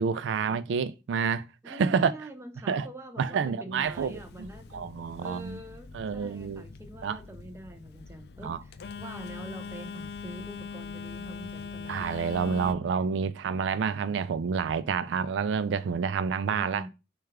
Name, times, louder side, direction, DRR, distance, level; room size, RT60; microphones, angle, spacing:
voice 1, 0.0-2.1 2.7-2.9 3.2-5.6 5.9-6.6 7.0-7.2 8.4-8.6 11.8-16.8, right 6 dB, 85° right, 0.3 m, -29 dB
voice 2, 1.6-4.9 5.2-12.1 15.0-15.1 16.5-16.9, right 1 dB, 15° right, 0.6 m, -45 dB
Telephone, 3.8-12.8, left 5 dB, 60° left, 0.3 m, -42 dB
6.3 x 2.4 x 3.4 m
head